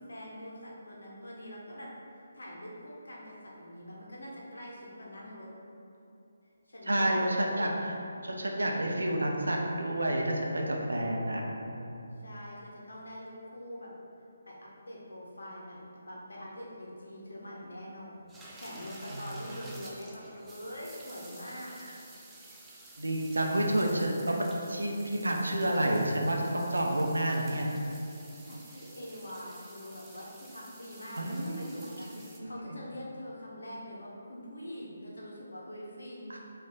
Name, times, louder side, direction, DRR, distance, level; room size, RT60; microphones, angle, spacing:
voice 1, 0.0-1.9 2.3-5.5 6.7-7.4 12.2-13.9 14.5-18.3 18.6-21.7 28.3-32.1 32.4-36.4, equal, 65° left, -4 dB, 0.8 m, -44 dB
voice 2, 6.9-8.0 8.2-12.0 19.1-19.3 23.0-27.7 31.2-31.8 32.4-32.8 36.3-36.4, right 1 dB, 70° right, 0 dB, 0.6 m, -30 dB
sound 1, 18.3-32.4, right 2 dB, 10° right, 0.3 m, -51 dB
4.5 x 2.4 x 3.7 m, 2.8 s
figure-of-eight pair, 145°, 0 cm